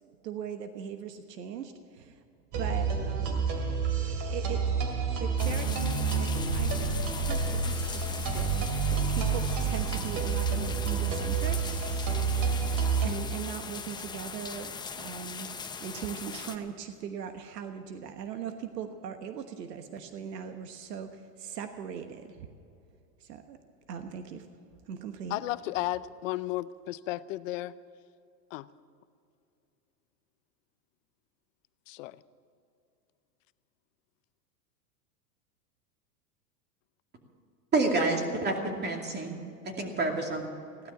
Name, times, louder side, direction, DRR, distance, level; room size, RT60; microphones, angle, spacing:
voice 1, 0.0-2.2 2.6-3.4 4.0-4.6 5.1-6.7 7.1-11.6 13.0-14.7 15.0-15.5 15.8-22.5 23.2-23.6 23.9-24.5 24.8-25.4, right 8 dB, 85° right, 7 dB, 1.3 m, -40 dB
sound 1, 2.5-13.1, right 5 dB, 40° right, 2.6 m, -29 dB
sound 2, 5.4-16.6, left 5 dB, 10° left, 0.6 m, -40 dB
voice 2, 25.3-27.7 28.5-28.7 31.9-32.2, left 16 dB, 55° left, 16 dB, 0.6 m, -34 dB
voice 3, 37.7-39.4 39.6-40.4, right 2 dB, 20° right, 2 dB, 2.5 m, -28 dB
16.0 x 12.0 x 7.1 m, 2.5 s
supercardioid pair, 130°, 48 cm